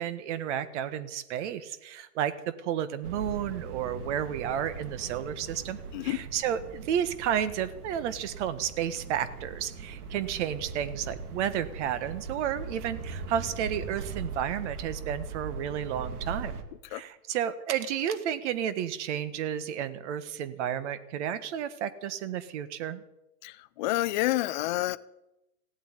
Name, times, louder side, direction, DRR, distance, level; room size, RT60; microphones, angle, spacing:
voice 1, 0.0-16.5 16.9-23.0, right 9 dB, 45° right, 1.5 m, -32 dB
sound 1, 3.0-16.6, right 4 dB, 70° right, 2.3 m, -40 dB
voice 2, 5.9-6.2 16.9-17.0 23.4-25.0, left 16 dB, 30° left, 0.5 m, -29 dB
16.5 x 8.4 x 9.9 m
hypercardioid pair, 145°, 46 cm